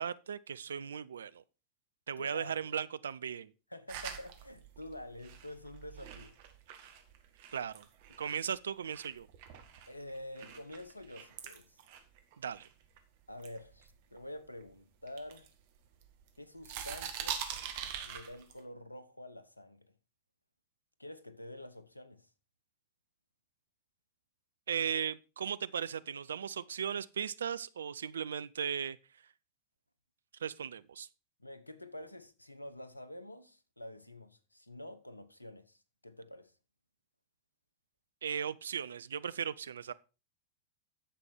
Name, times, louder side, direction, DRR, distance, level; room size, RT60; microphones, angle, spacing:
voice 1, 0.0-1.4 2.1-3.5 7.5-7.9 8.2-9.3 12.4-12.7 24.7-29.0 30.4-31.1 38.2-39.9, right 8 dB, 65° right, 0.5 m, -37 dB
voice 2, 2.2-2.7 3.7-6.4 9.9-11.8 13.3-15.5 16.4-17.4 18.0-19.9 21.0-22.3 31.4-36.5, left 1 dB, 85° left, 0.9 m, -48 dB
sound 1, 3.9-8.5 8.9-13.0 13.4-14.6 15.1-16.3 16.6-18.6, right 9 dB, 50° right, 1.8 m, -44 dB
10.0 x 7.0 x 4.5 m
figure-of-eight pair, 90°, 0 cm